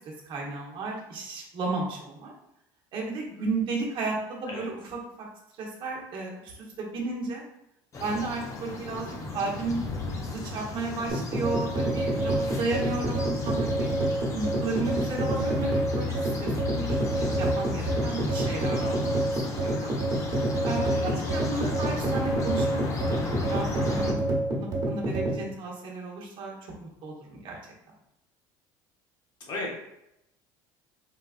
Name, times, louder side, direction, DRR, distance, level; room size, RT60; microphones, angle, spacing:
voice 1, 0.3-2.3 2.9-4.7 5.2-5.3 5.6-7.4 8.0-9.8 10.2-13.9 14.3-16.9 17.1-18.9 19.6-19.9 20.6-22.8 23.1-24.2 24.6-27.6, right 3 dB, 55° right, -2 dB, 1.1 m, -33 dB
sound 1, 7.9-24.1, left 3 dB, 35° left, 0.7 m, -35 dB
sound 2, 11.1-25.4, right 1 dB, 40° right, 1.3 m, -27 dB
voice 2, 18.8-19.4 20.7-21.3 29.4-29.8, left 2 dB, 50° left, -1 dB, 1.2 m, -37 dB
4.2 x 2.3 x 2.4 m, 0.83 s
supercardioid pair, 90°, 10 cm